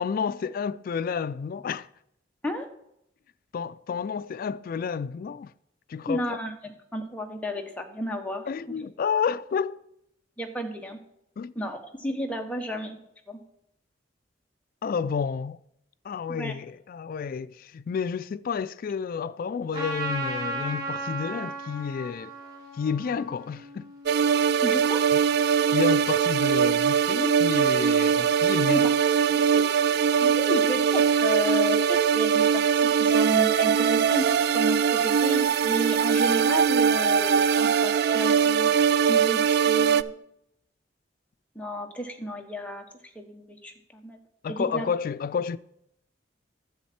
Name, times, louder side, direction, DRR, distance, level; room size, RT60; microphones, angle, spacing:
voice 1, 0.0-1.9 3.5-5.5 5.9-6.4 8.5-9.8 11.4-11.5 14.8-15.6 16.0-22.3 22.7-23.9 25.7-28.9 44.4-45.6, left 6 dB, 50° left, 0.3 m, -30 dB
voice 2, 6.1-8.5 9.1-9.2 10.4-11.0 11.6-13.0 13.3-13.4 16.3-16.5 24.6-25.0 28.7-28.9 29.3-29.6 30.2-34.3 34.5-38.7 39.1-40.2 41.5-42.8 43.1-44.2 44.5-44.9, equal, 10° left, 1.1 m, -32 dB
Trumpet, 19.7-24.4, right 2 dB, 25° right, 2.9 m, -35 dB
sound 1, 24.1-40.0, right 7 dB, 60° right, 0.3 m, -22 dB
10.5 x 7.2 x 4.3 m
head